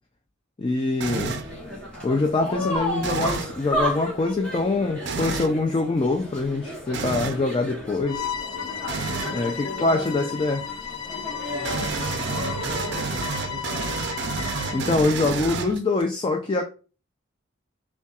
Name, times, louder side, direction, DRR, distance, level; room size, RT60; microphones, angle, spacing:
voice 1, 0.6-1.4 2.0-8.3 9.3-10.6 14.7-16.6, left 3 dB, 25° left, 0.3 m, -24 dB
sound 1, 1.0-1.5 3.0-3.6 5.0-5.5 6.9-7.4 8.9-9.4 11.6-16.0, right 4 dB, 55° right, 0.4 m, -30 dB
sound 2, 1.1-13.1, equal, 5° left, 1.3 m, -33 dB
Bowed string instrument, 8.1-15.0, left 9 dB, 85° left, 0.6 m, -34 dB
voice 2, 9.4-10.3 11.5-14.0, left 1 dB, 65° left, 1.0 m, -37 dB
5.3 x 2.2 x 2.4 m
head